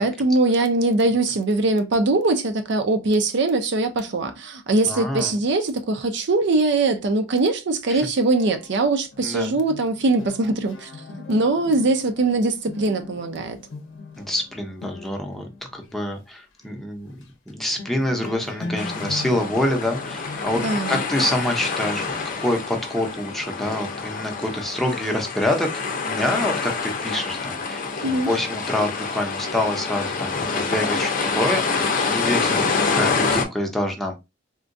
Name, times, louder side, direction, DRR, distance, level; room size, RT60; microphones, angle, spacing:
voice 1, 0.0-10.9 11.3-13.6 20.6-21.0 28.0-28.3, right 2 dB, 65° right, 0.5 m, -21 dB
voice 2, 4.9-5.4 7.9-8.0 9.2-9.5 14.2-17.1 17.5-22.1 22.4-25.7 26.0-32.7 32.9-34.2, left 1 dB, ahead, 0.6 m, -26 dB
sound 1, 8.3-16.0 16.6-16.8 17.1-17.5 17.8-23.4, left 2 dB, 85° left, 0.6 m, -40 dB
sound 2, 18.8-33.4, left 4 dB, 45° left, 0.6 m, -26 dB
3.7 x 2.2 x 2.5 m
head